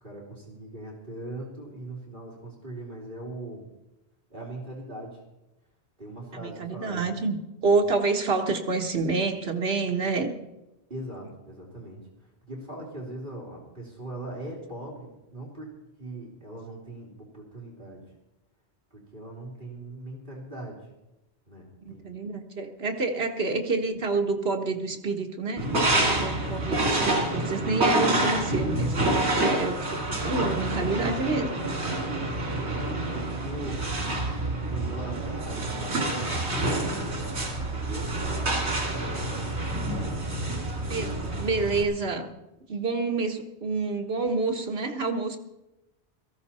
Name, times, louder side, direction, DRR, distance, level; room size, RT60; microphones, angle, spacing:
voice 1, 0.0-3.7 4.3-5.2 6.0-7.2 7.7-7.8 10.9-15.7 16.0-18.0 18.9-20.9 21.5-22.0 32.6-33.9 34.7-36.5 37.0-39.5 39.9-40.2, right 2 dB, 50° right, -3 dB, 3.2 m, -40 dB
voice 2, 6.3-7.4 7.6-10.3 21.8-31.5 40.7-42.3 42.7-45.4, right 3 dB, 65° right, 4 dB, 1.5 m, -28 dB
sound 1, 25.6-41.8, right 1 dB, 85° right, 3.0 m, -27 dB
17.5 x 14.0 x 4.2 m, 0.95 s
omnidirectional pair, 1.1 m